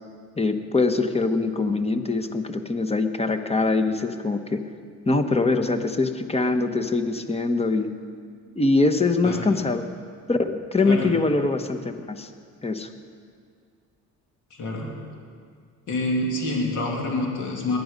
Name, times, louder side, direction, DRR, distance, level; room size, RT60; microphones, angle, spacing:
voice 1, 0.4-4.6 5.1-7.9 8.6-9.8 10.3-12.3 12.6-12.9, left 3 dB, 20° left, 8 dB, 1.1 m, -23 dB
voice 2, 14.5-14.9 15.9-17.8, left 2 dB, 75° left, -1 dB, 2.8 m, -27 dB
20.5 x 10.5 x 5.3 m, 2.1 s
cardioid pair, 90°, 30 cm